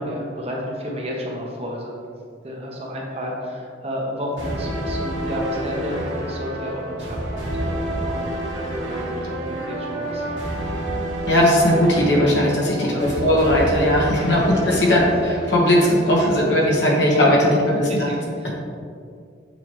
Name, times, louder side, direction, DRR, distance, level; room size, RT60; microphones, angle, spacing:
voice 1, 0.0-1.9 2.4-8.3 8.7-10.5 12.6-13.1 14.2-14.4 14.7-15.0 17.2-18.5, equal, 35° right, -1 dB, 0.9 m, -32 dB
sound 1, 4.4-16.3, right 1 dB, 85° right, 1.5 m, -29 dB
voice 2, 11.3-15.0 15.3-15.8 16.1-18.1, left 1 dB, 60° left, -3 dB, 1.3 m, -18 dB
7.1 x 4.8 x 3.0 m, 2.3 s
head